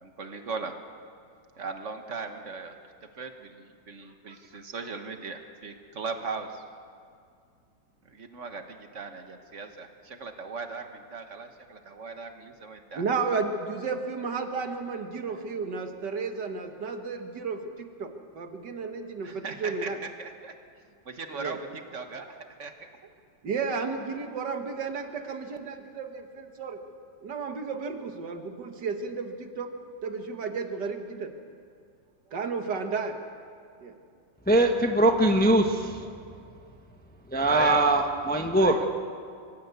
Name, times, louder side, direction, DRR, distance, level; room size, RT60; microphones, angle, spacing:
voice 1, 0.0-0.8 1.6-2.8 3.2-6.6 8.1-13.0 15.3-15.4 19.2-19.9 20.2-20.5 21.0-21.7 21.9-22.9 37.5-37.9 38.6-38.9, right 4 dB, 40° right, 6 dB, 1.6 m, -38 dB
voice 2, 12.9-20.0 21.4-21.6 23.4-26.8 27.2-29.7 30.0-31.3 32.3-33.2 33.8-33.9, right 4 dB, 65° right, 6 dB, 2.0 m, -33 dB
voice 3, 34.5-35.9 37.3-38.8, right 1 dB, 5° left, 4 dB, 0.9 m, -21 dB
24.5 x 15.0 x 8.2 m, 2.3 s
omnidirectional pair, 2.1 m